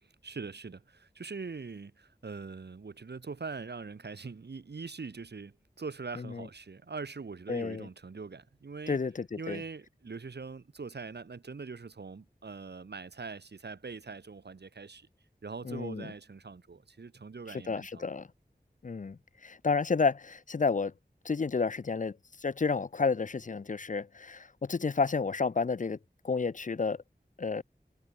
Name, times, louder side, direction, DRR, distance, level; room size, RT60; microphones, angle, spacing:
voice 1, 0.0-9.0 9.4-15.1 15.4-18.1, right 4 dB, 90° right, 1.4 m, -42 dB
voice 2, 7.5-7.9 8.9-9.6 15.7-16.1 17.7-18.3 18.8-20.9 21.2-22.2 22.4-26.0 26.2-27.0 27.4-27.6, left 4 dB, 50° left, 0.5 m, -31 dB
wide cardioid pair, 55°, 17 cm